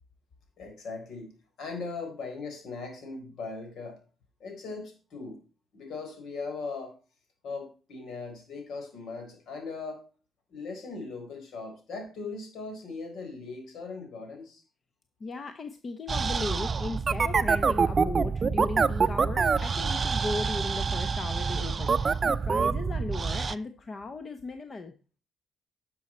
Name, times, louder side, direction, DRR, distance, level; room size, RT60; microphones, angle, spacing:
voice 1, 0.6-1.3 1.6-4.0 4.4-5.4 5.7-6.9 7.4-10.0 10.5-14.6, left 4 dB, 70° left, 4 dB, 4.1 m, -39 dB
voice 2, 15.2-24.9, left 3 dB, 40° left, 9 dB, 0.9 m, -37 dB
sound 1, 16.1-23.5, right 5 dB, 35° right, 0.5 m, -26 dB
11.0 x 6.4 x 4.3 m, 0.36 s
cardioid pair, 90°, 0 cm